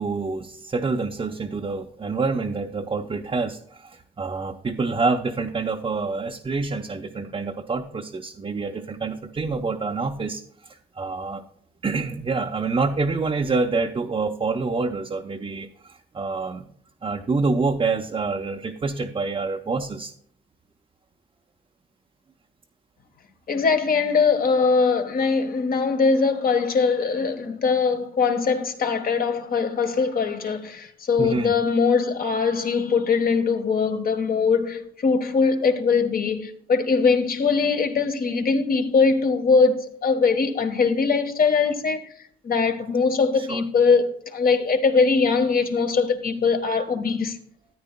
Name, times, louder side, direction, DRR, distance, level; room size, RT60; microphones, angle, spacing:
voice 1, 0.0-10.4 10.7-11.4 11.8-16.7 17.0-20.1 31.2-31.5 43.4-43.6, right 4 dB, 25° right, 0.7 m, -27 dB
voice 2, 23.5-42.1 42.4-47.4, left 5 dB, 45° left, 1.4 m, -21 dB
13.5 x 9.4 x 2.2 m
cardioid pair, 90°, 20 cm